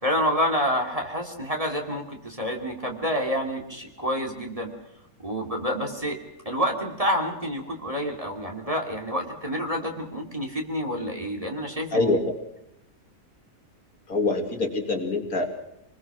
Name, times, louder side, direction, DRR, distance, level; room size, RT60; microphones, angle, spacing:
voice 1, 0.0-4.7 5.2-6.2 6.4-12.1, equal, 20° right, 2 dB, 2.6 m, -28 dB
voice 2, 11.9-12.2 14.1-15.5, left 2 dB, 60° left, 4 dB, 2.8 m, -24 dB
26.0 x 21.0 x 6.1 m, 0.81 s
omnidirectional pair, 1.7 m